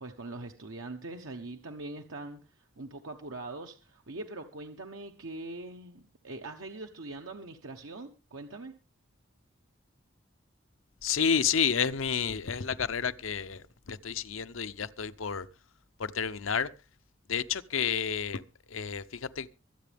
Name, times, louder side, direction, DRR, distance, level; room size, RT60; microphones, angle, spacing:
voice 1, 0.0-8.7, right 2 dB, 85° right, 1.2 m, -42 dB
voice 2, 11.0-15.5 16.0-16.7 17.3-18.4 18.7-19.5, left 7 dB, 85° left, 0.8 m, -30 dB
24.5 x 8.5 x 3.5 m
head